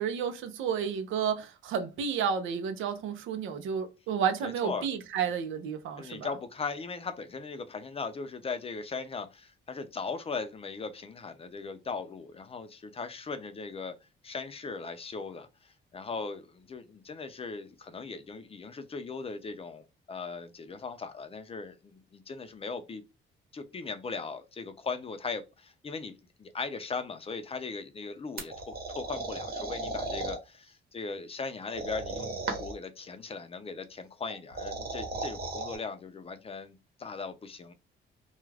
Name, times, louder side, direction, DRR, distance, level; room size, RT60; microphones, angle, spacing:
voice 1, 0.0-6.3, right 7 dB, 80° right, 0.6 m, -31 dB
voice 2, 4.4-4.9 6.0-14.0 14.2-23.0 23.5-37.7, left 4 dB, 30° left, 0.5 m, -39 dB
sound 1, 28.4-30.4 31.7-32.9 34.3-35.8, right 3 dB, 50° right, 1.0 m, -36 dB
2.4 x 2.3 x 3.2 m
cardioid pair, 90°, 20 cm